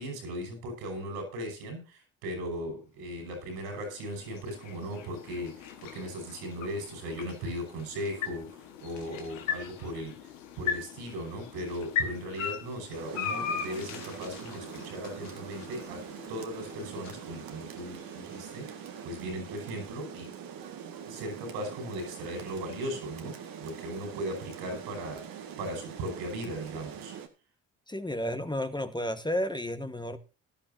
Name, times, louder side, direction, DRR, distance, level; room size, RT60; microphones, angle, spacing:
voice 1, 0.0-10.2 10.6-20.3 21.1-27.1, equal, 80° right, 5.8 m, -38 dB
sound 1, 3.1-19.3, left 7 dB, 90° left, 1.5 m, -39 dB
Rain, 12.9-27.3, right 8 dB, 65° right, 1.9 m, -43 dB
voice 2, 27.9-30.2, left 1 dB, 10° left, 1.4 m, -32 dB
17.0 x 11.5 x 2.7 m
hypercardioid pair, 50°, 37 cm